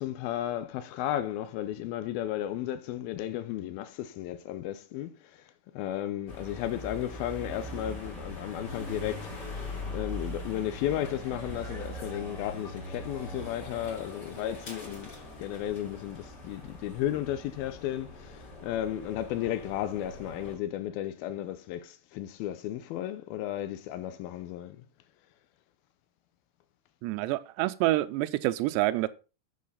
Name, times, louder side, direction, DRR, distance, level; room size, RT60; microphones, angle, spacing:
voice 1, 0.0-5.4 5.7-9.6 9.9-24.8, left 12 dB, 85° left, 2.1 m, -34 dB
sound 1, 6.3-20.6, left 1 dB, 25° left, 2.9 m, -41 dB
voice 2, 27.0-29.1, right 16 dB, 80° right, 2.8 m, -27 dB
7.7 x 7.5 x 5.6 m
omnidirectional pair, 5.2 m